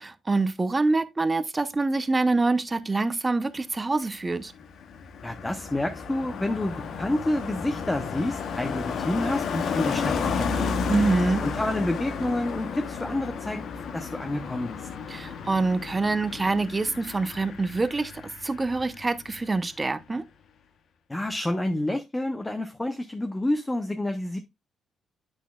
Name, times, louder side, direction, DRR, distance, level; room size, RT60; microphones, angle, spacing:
voice 1, 0.0-4.5 10.9-11.4 15.1-20.2, right 3 dB, 20° right, 0.7 m, -25 dB
Car passing by, 4.2-19.0 19.3-19.6, left 5 dB, 65° left, 0.9 m, -32 dB
voice 2, 5.2-10.9 11.4-13.6 13.9-14.9 21.1-24.4, left 1 dB, 15° left, 0.7 m, -29 dB
8.2 x 6.2 x 2.3 m
cardioid pair, 90°, 0 cm